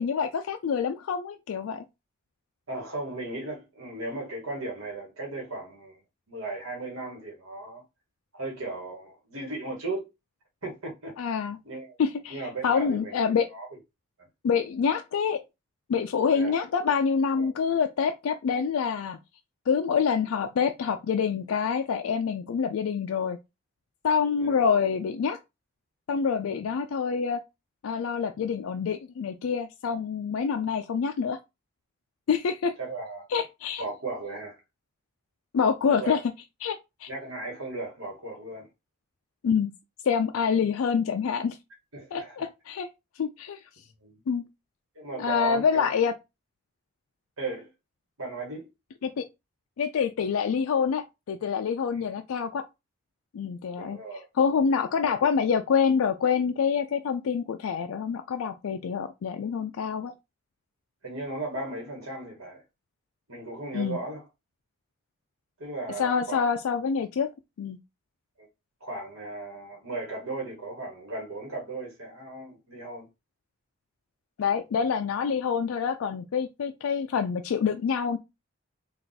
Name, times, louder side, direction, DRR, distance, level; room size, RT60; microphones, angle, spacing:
voice 1, 0.0-1.8 11.2-11.6 12.0-13.5 14.4-15.4 15.9-19.2 19.7-23.4 24.0-25.4 26.1-27.4 27.8-31.4 32.3-32.7 33.3-33.8 35.5-36.2 36.6-37.1 39.4-39.7 40.0-41.6 42.1-42.9 43.2-43.6 44.3-44.4 45.2-46.1 49.0-49.2 49.8-52.6 53.3-54.0 54.4-60.1 63.7-64.0 66.0-67.3 67.6-67.8 74.4-78.2, left 6 dB, 80° left, 0.4 m, -26 dB
voice 2, 2.7-6.0 6.3-7.8 8.3-10.1 10.6-11.1 11.6-11.9 12.3-13.7 16.3-16.6 17.3-17.5 24.4-24.6 32.8-33.2 33.8-34.6 35.9-36.2 37.1-38.7 41.9-42.5 44.0-44.2 44.9-45.9 47.4-47.7 48.2-48.7 51.9-52.0 53.8-54.2 61.0-62.6 63.3-64.2 65.6-66.5 68.4-68.5 68.8-73.1, right 2 dB, 80° right, 1.5 m, -36 dB
3.4 x 2.4 x 4.0 m
head